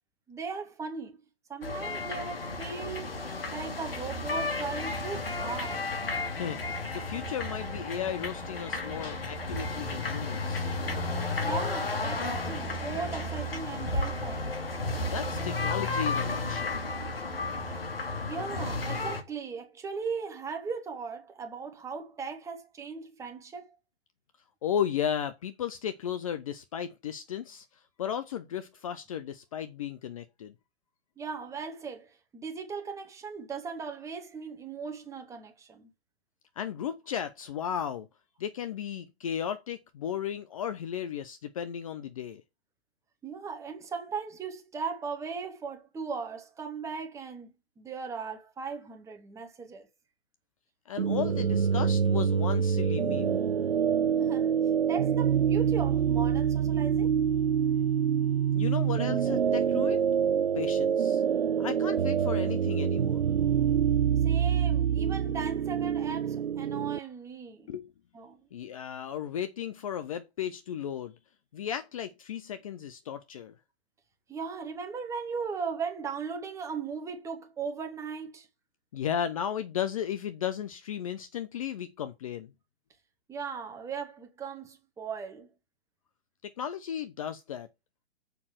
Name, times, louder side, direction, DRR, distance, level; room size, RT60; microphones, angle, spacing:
voice 1, 0.3-1.2 1.5-3.1 3.5-5.9 11.4-14.5 18.3-23.7 31.2-35.9 43.2-49.9 54.2-54.6 54.9-57.2 64.2-67.7 68.1-68.4 74.3-78.5 83.3-85.5, right 5 dB, 10° right, 1.6 m, -38 dB
sound 1, 1.6-19.2, left 2 dB, 65° left, 2.3 m, -33 dB
voice 2, 6.9-10.7 15.0-16.9 24.6-30.5 36.6-38.1 38.4-42.4 50.9-53.4 58.5-60.1 60.5-61.2 61.6-63.3 67.7-67.9 68.5-71.1 71.5-73.5 78.9-82.5 86.4-87.7, left 9 dB, 35° left, 0.6 m, -35 dB
sound 2, 51.0-67.0, right 8 dB, 80° right, 0.5 m, -26 dB
6.9 x 5.4 x 6.2 m
figure-of-eight pair, 120°, 31 cm